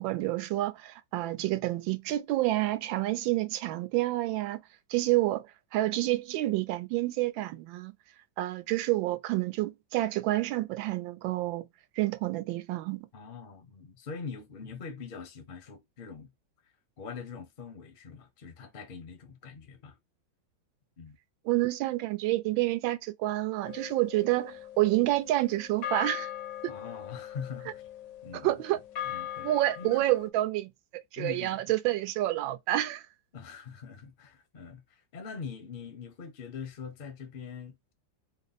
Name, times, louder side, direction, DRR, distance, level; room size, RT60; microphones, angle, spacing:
voice 1, 0.0-4.6 4.9-5.5 5.7-7.9 8.4-11.7 12.0-13.1 21.5-26.3 26.6-26.7 28.4-28.8 29.4-30.7 31.1-33.1, right 16 dB, 80° right, 1.3 m, -28 dB
voice 2, 13.1-16.3 17.0-20.0 21.0-21.2 26.7-27.8 28.2-28.8 29.1-29.5 29.8-30.1 31.2-31.6 33.3-37.9, left 5 dB, 50° left, 0.6 m, -43 dB
sound 1, 23.7-30.3, left 11 dB, 75° left, 1.2 m, -40 dB
3.3 x 2.0 x 3.9 m
omnidirectional pair, 2.1 m